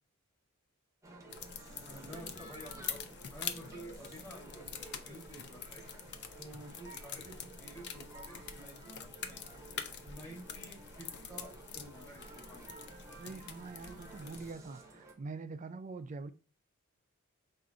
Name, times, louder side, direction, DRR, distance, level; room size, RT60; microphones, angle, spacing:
Male speech man speaking, 1.0-15.1, right 2 dB, 15° right, 0.8 m, -53 dB
sound 1, 1.3-14.5, left 7 dB, 50° left, 0.5 m, -46 dB
voice 1, 1.7-3.0 3.3-5.8 6.4-9.5 10.0-12.9, right 1 dB, 10° left, 1.6 m, -51 dB
voice 2, 13.1-16.3, right 3 dB, 35° right, 0.3 m, -44 dB
4.8 x 2.5 x 3.8 m
head